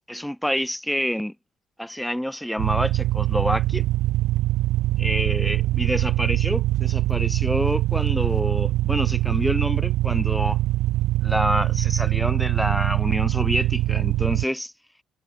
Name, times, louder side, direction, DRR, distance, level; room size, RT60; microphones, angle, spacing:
voice 1, 0.1-1.3 1.8-3.8 5.0-10.6 11.2-14.7, equal, ahead, 1.7 m, -27 dB
sound 1, 2.6-14.4, right 16 dB, 75° right, 0.4 m, -23 dB
supercardioid pair, 85°, 0 cm